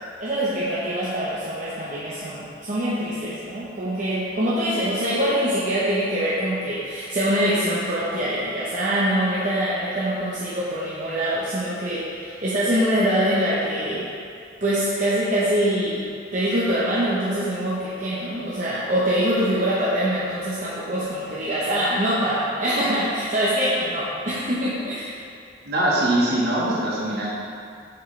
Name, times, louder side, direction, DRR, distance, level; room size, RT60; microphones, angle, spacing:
voice 1, 0.2-14.1 14.6-25.2, equal, 40° right, -9 dB, 0.9 m, -24 dB
voice 2, 25.6-27.3, right 1 dB, 60° right, -6 dB, 1.6 m, -22 dB
7.3 x 6.4 x 3.3 m, 2.4 s
head